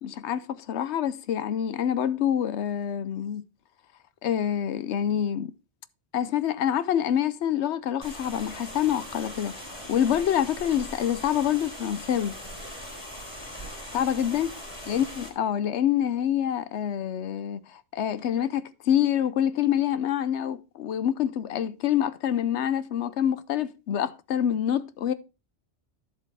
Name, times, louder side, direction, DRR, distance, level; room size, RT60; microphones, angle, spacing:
voice 1, 0.0-3.4 4.2-5.5 6.1-9.6 9.9-12.4 13.9-14.5 14.9-25.1, left 10 dB, 85° left, 1.0 m, -26 dB
sound 1, 8.0-15.3, equal, 25° left, 3.3 m, -40 dB
10.5 x 7.5 x 3.3 m
omnidirectional pair, 1.1 m